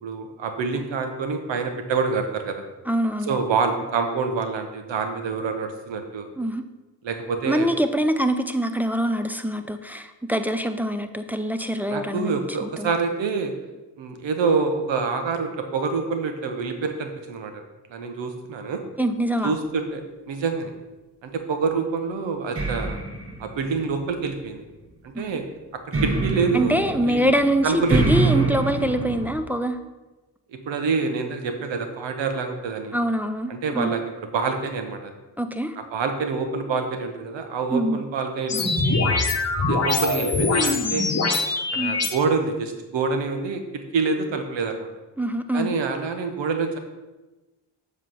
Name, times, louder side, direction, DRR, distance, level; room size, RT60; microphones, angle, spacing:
voice 1, 0.0-2.6 3.3-6.3 7.0-7.8 11.9-13.5 14.0-17.6 17.9-18.8 19.4-20.7 21.2-23.0 23.4-24.7 25.2-25.4 26.0-26.8 27.0-27.3 27.6-28.1 30.7-33.0 33.5-34.0 34.3-35.1 35.8-39.2 39.7-41.2 41.7-43.6 43.9-44.9 45.5-46.8, right 4 dB, 80° right, 6 dB, 1.0 m, -26 dB
voice 2, 2.9-3.4 6.4-6.6 7.5-12.9 19.0-19.5 26.5-29.8 32.9-33.9 35.4-35.7 37.7-38.0 41.8-42.0 45.2-45.7, equal, 5° right, 7 dB, 0.5 m, -24 dB
sound 1, 22.6-24.5 25.9-29.3, right 3 dB, 30° right, 1.3 m, -26 dB
sound 2, 38.5-42.1, left 3 dB, 35° left, 1.1 m, -23 dB
7.4 x 3.3 x 5.7 m, 1.1 s
supercardioid pair, 50°, 44 cm